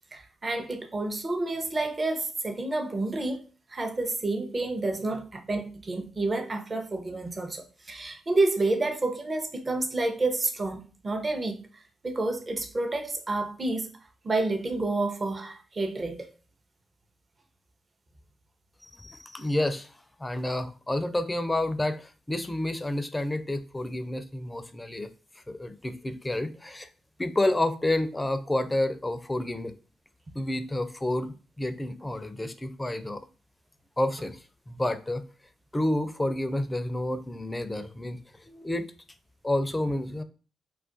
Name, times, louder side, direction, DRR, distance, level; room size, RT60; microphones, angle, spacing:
voice 1, 0.1-3.4 3.7-11.6 12.0-13.9 14.2-16.3, right 2 dB, 35° right, 0.7 m, -29 dB
voice 2, 18.8-19.9 20.2-25.1 25.5-26.9 27.2-29.7 30.4-33.3 34.0-34.4 34.7-35.2 35.7-38.9 39.4-40.2, left 1 dB, 20° left, 0.4 m, -29 dB
2.4 x 2.2 x 3.7 m
hypercardioid pair, 45°, 0 cm